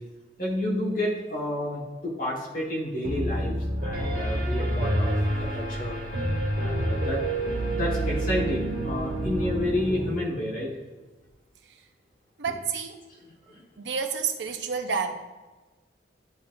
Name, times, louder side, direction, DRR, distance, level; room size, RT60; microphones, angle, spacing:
voice 1, 0.4-3.5 3.8-5.1 5.5-6.0 6.6-7.2 7.7-10.7, left 1 dB, 50° left, -3 dB, 1.5 m, -30 dB
Piano, 3.0-10.1, right 1 dB, 50° right, 1.6 m, -28 dB
voice 2, 12.4-13.0 13.8-15.1, right 6 dB, 85° right, 5 dB, 0.7 m, -29 dB
10.0 x 4.1 x 2.6 m, 1.2 s
head